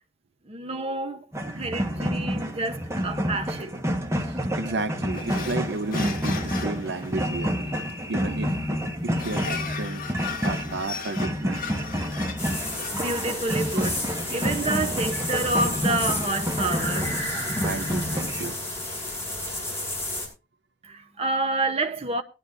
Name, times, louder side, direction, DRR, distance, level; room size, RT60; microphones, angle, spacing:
voice 1, 0.5-1.3 1.6-3.8 12.9-17.3 20.8-22.2, right 2 dB, 35° right, 1.0 m, -29 dB
sound 1, 1.3-18.5, equal, 15° right, 1.5 m, -29 dB
voice 2, 1.9-2.3 4.2-7.6 7.9-10.1 10.4-11.6 17.6-18.6, right 3 dB, 65° right, 0.7 m, -33 dB
sound 2, 5.1-16.0, left 5 dB, 50° left, 1.9 m, -38 dB
sound 3, 12.4-20.3, left 1 dB, 15° left, 5.4 m, -31 dB
19.5 x 11.0 x 2.7 m
head